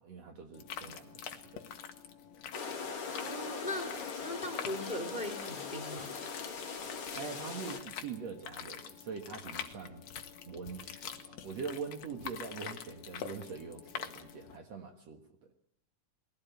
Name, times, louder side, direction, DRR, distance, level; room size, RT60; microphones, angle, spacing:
voice 1, 0.0-1.6 7.2-10.1 10.4-15.2, right 5 dB, 55° right, 5 dB, 2.6 m, -43 dB
sound 1, 0.5-14.6, left 8 dB, 60° left, 2.4 m, -46 dB
sound 2, 2.5-7.8, left 5 dB, 45° left, 3.1 m, -40 dB
voice 2, 3.2-6.1, left 1 dB, 15° left, 6 dB, 2.9 m, -39 dB
21.5 x 16.5 x 9.3 m, 0.73 s
omnidirectional pair, 3.8 m